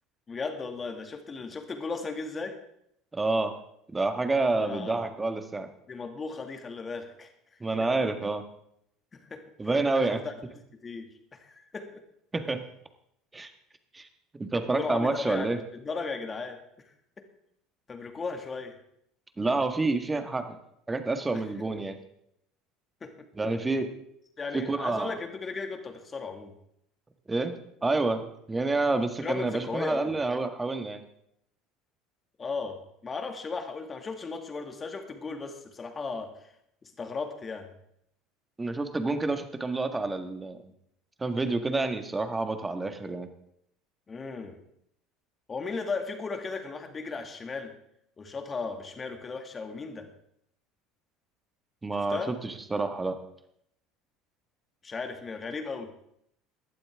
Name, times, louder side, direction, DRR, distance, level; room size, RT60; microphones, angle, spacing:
voice 1, 0.3-2.6 4.5-5.1 5.9-7.3 9.1-9.4 10.1-10.3 10.8-12.0 14.7-17.2 17.9-18.8 21.3-21.4 23.0-23.3 24.4-26.6 29.2-30.2 32.4-36.5 36.8-37.7 44.1-44.6 45.5-47.8 48.2-50.1 52.1-52.4 54.8-55.9, left 4 dB, 30° left, 5 dB, 2.2 m, -36 dB
voice 2, 3.1-3.6 3.9-5.7 7.6-8.4 9.6-10.2 12.3-12.6 13.3-13.5 13.9-14.1 14.4-15.6 19.4-20.6 20.9-22.0 23.4-23.9 24.5-25.1 27.3-31.0 38.6-40.6 41.2-43.3 51.8-53.2, right 3 dB, 20° right, 7 dB, 1.7 m, -28 dB
17.5 x 12.0 x 3.7 m, 0.75 s
hypercardioid pair, 75°, 0 cm